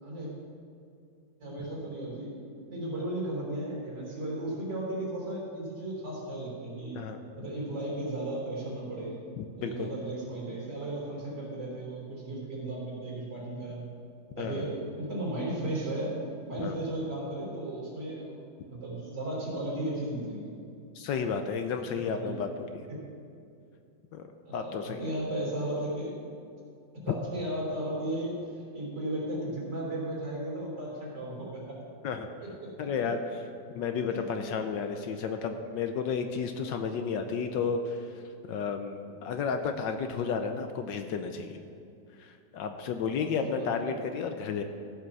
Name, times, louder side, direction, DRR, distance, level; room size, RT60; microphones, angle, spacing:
voice 1, 1.4-2.4 2.7-7.0 7.4-9.2 9.6-13.8 14.4-16.2 16.5-18.4 18.7-20.5 22.1-22.3 22.9-23.0 24.5-26.1 27.0-31.8 32.4-32.9 34.1-34.2 43.1-43.9, right 1 dB, 60° right, -5 dB, 4.2 m, -35 dB
voice 2, 9.4-10.0 14.4-14.7 16.6-16.8 20.9-22.9 24.1-24.3 24.5-25.2 27.1-27.2 32.0-32.3 32.8-33.2 33.7-38.1 38.5-41.6 42.2-44.6, left 6 dB, 70° left, 6 dB, 1.3 m, -32 dB
15.0 x 5.8 x 6.0 m, 2.5 s
omnidirectional pair, 2.2 m